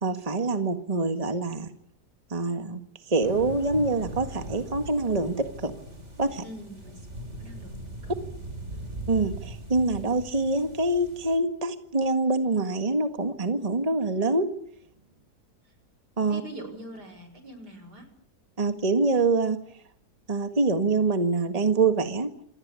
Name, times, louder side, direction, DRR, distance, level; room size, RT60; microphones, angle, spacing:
voice 1, 0.0-1.7 2.3-2.8 3.1-5.7 6.2-6.4 9.1-14.5 16.2-16.4 18.6-19.6 20.3-22.3, right 3 dB, 25° right, 8 dB, 1.8 m, -25 dB
sound 1, 3.2-11.4, right 2 dB, 45° right, 5.5 m, -40 dB
voice 2, 6.4-7.1 7.4-7.8 8.0-8.1 8.7-8.8 15.6-15.7 16.3-18.1, right 1 dB, 90° right, 8 dB, 6.5 m, -43 dB
27.0 x 19.0 x 8.4 m, 0.68 s
omnidirectional pair, 1.7 m